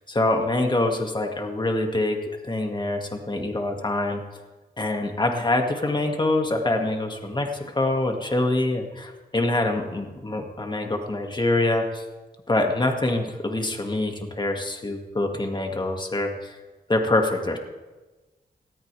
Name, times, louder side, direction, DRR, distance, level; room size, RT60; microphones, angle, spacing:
voice 1, 0.1-2.2 2.5-4.2 4.8-7.5 7.7-12.0 12.5-16.6 16.9-17.6, left 2 dB, 25° left, 3 dB, 2.1 m, -25 dB
19.0 x 13.5 x 3.4 m, 1.2 s
cardioid pair, 70°, 17 cm